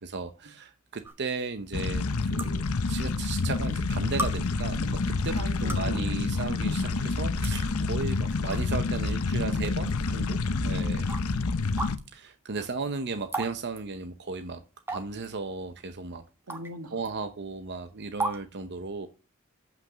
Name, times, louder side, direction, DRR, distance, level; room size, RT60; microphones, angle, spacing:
voice 1, 0.0-11.1 12.1-14.6 14.9-16.2 16.9-19.1, right 4 dB, 50° right, 0.8 m, -35 dB
sound 1, 1.0-1.1 2.4-2.5 3.5-3.6 4.2-4.3 5.5-5.9 6.9-7.0 7.4-7.6 8.3-8.6 9.1-9.2 10.1-10.2 11.1-11.2 11.8-11.9 13.3-13.5 13.8-13.9 14.9-15.3 16.5-16.7 17.0-17.1 18.2-18.4, right 2 dB, 10° right, 1.3 m, -32 dB
sound 2, 1.7-12.0, left 3 dB, 75° left, 0.8 m, -28 dB
voice 2, 5.3-6.2 16.5-16.9, right 1 dB, 85° right, 1.7 m, -41 dB
7.8 x 5.9 x 7.8 m
head